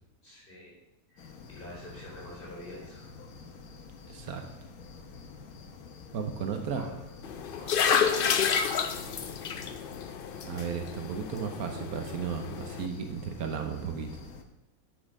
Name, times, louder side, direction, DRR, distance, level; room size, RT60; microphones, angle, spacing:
voice 1, 0.2-0.8 1.1-3.1 6.7-7.0 7.6-8.8, equal, 35° left, -5 dB, 4.0 m, -47 dB
sound 1, 1.2-14.4, left 4 dB, 85° left, 1.4 m, -48 dB
voice 2, 4.1-4.4 6.1-6.8 10.4-14.2, right 6 dB, 85° right, 5 dB, 1.3 m, -34 dB
sound 2, 7.2-12.9, left 7 dB, 55° left, 0.6 m, -30 dB
8.3 x 6.2 x 5.3 m, 0.88 s
omnidirectional pair, 1.5 m